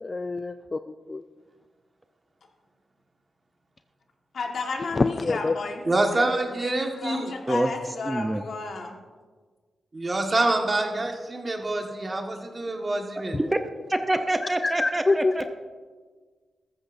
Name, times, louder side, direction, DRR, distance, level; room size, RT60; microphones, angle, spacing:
voice 1, 0.0-1.2 5.0-5.6 14.4-15.3, left 3 dB, 30° left, 10 dB, 0.4 m, -26 dB
voice 2, 4.3-6.0 6.5-9.0, left 3 dB, 65° left, 2 dB, 1.6 m, -32 dB
voice 3, 5.9-7.3 9.9-13.4, right 2 dB, 30° right, 3 dB, 1.5 m, -26 dB
voice 4, 8.1-8.4 13.3-13.6 13.9-15.5, right 1 dB, 15° right, 7 dB, 0.6 m, -26 dB
14.0 x 13.5 x 2.6 m, 1.5 s
cardioid pair, 95°, 0 cm